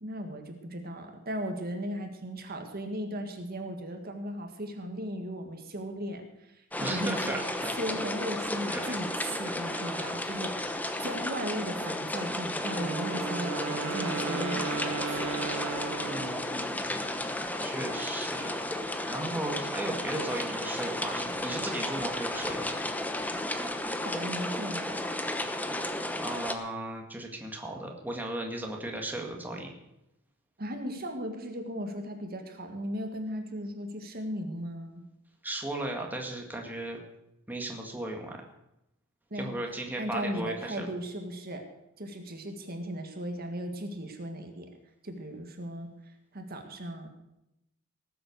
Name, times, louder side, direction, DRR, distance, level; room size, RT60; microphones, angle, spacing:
voice 1, 0.0-10.6 11.0-15.5 24.0-25.1 30.6-35.0 39.3-39.6 40.0-41.6 42.0-44.7 45.0-47.1, equal, 50° right, 4 dB, 1.8 m, -37 dB
sound 1, 6.7-26.5, left 1 dB, 10° left, 0.9 m, -33 dB
voice 2, 6.8-7.7 8.7-10.1 16.0-18.5 19.1-22.7 26.2-29.7 35.4-37.0 37.5-38.4 39.4-40.9, right 1 dB, 10° right, 1 dB, 1.8 m, -36 dB
Wind instrument woodwind instrument, 12.6-16.7, right 5 dB, 90° right, 1.2 m, -36 dB
18.5 x 7.9 x 6.6 m, 0.86 s
head